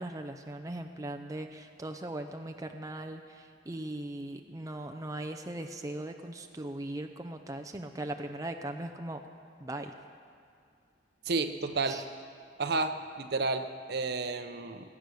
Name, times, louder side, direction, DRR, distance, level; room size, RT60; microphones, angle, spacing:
voice 1, 0.0-9.2 9.6-9.9 11.9-12.0, right 1 dB, 20° right, 5 dB, 0.6 m, -39 dB
voice 2, 11.3-12.0 12.6-15.0, right 3 dB, 60° right, 8 dB, 0.8 m, -31 dB
22.0 x 8.4 x 6.4 m, 2.4 s
head